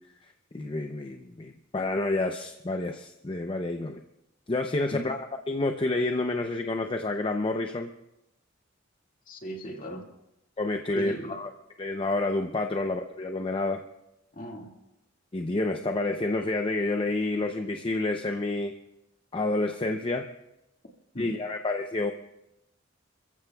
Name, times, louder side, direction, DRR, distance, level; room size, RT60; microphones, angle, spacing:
voice 1, 0.5-4.0 4.5-7.9 10.6-11.5 11.8-13.8 15.3-18.7 19.3-20.3 21.2-22.1, left 2 dB, 25° left, 5 dB, 0.6 m, -29 dB
voice 2, 9.3-10.1 10.9-11.4 14.3-14.7 21.1-21.4, equal, 45° left, 1 dB, 2.0 m, -37 dB
29.0 x 14.5 x 2.3 m, 0.90 s
head